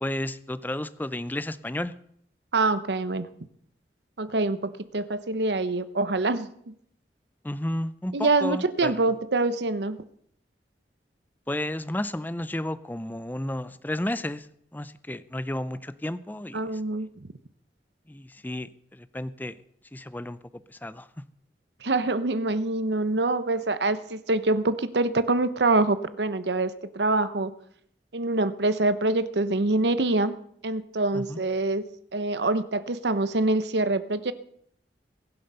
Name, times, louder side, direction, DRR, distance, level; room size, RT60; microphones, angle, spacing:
voice 1, 0.0-1.9 7.4-9.0 11.5-14.5 14.7-16.7 18.1-19.6 19.9-21.1 31.1-31.4, left 1 dB, 10° left, 14 dB, 0.5 m, -32 dB
voice 2, 2.5-3.3 4.2-6.7 8.1-10.0 16.5-17.3 21.8-27.5 28.1-30.4 30.6-31.8 32.1-34.3, right 2 dB, 80° right, 13 dB, 0.9 m, -25 dB
22.0 x 7.7 x 5.6 m, 0.67 s
head